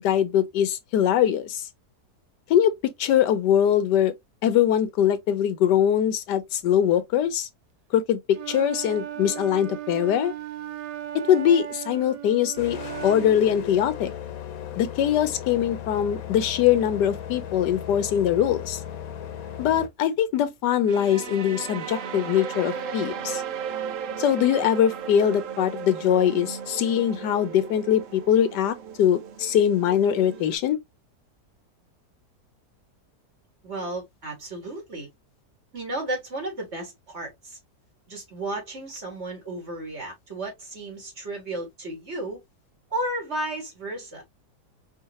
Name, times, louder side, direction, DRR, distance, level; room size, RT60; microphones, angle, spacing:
voice 1, 0.0-1.6 2.5-4.1 4.4-7.5 7.9-8.2 8.5-10.3 11.3-14.1 14.8-18.8 19.6-23.4 24.2-30.8, left 10 dB, 90° left, 1.4 m, -22 dB
Wind instrument woodwind instrument, 8.3-13.5, right 11 dB, 85° right, 1.2 m, -36 dB
sound 1, 12.6-19.9, left 9 dB, 65° left, 1.1 m, -36 dB
sound 2, 20.9-30.6, right 7 dB, 60° right, 0.9 m, -35 dB
voice 2, 33.6-35.1 35.7-37.6 38.1-42.4 42.9-44.2, right 1 dB, 40° right, 2.0 m, -33 dB
4.7 x 2.6 x 2.9 m
omnidirectional pair, 1.8 m